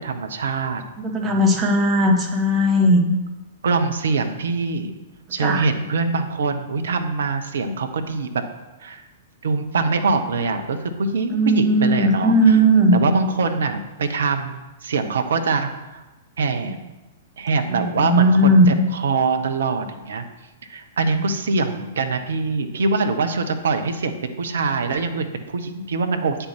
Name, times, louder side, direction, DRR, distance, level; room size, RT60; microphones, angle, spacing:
voice 1, 0.0-0.8 1.3-1.6 3.6-4.9 5.3-8.4 8.8-9.0 9.4-12.6 12.9-16.0 16.4-16.8 17.4-20.2 20.7-26.5, right 4 dB, 60° right, 7 dB, 0.8 m, -24 dB
voice 2, 1.0-3.0 5.4-5.6 11.3-13.0 17.8-18.7, right 1 dB, 20° right, 0 dB, 1.4 m, -17 dB
8.5 x 4.5 x 5.9 m, 1.1 s
figure-of-eight pair, 105°, 0 cm